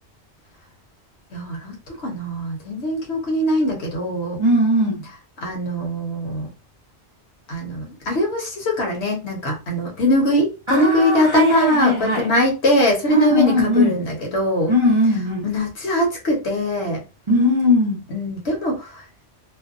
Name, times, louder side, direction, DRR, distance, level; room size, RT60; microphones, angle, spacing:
voice 1, 1.3-4.4 5.4-6.5 7.5-14.7 15.4-17.0 18.1-19.0, left 1 dB, 70° left, 1.2 m, -22 dB
voice 2, 4.4-5.1 10.7-12.3 13.1-14.0 14.7-15.5 17.3-18.0, left 1 dB, 35° right, 0.5 m, -19 dB
2.7 x 2.1 x 2.5 m
omnidirectional pair, 1.2 m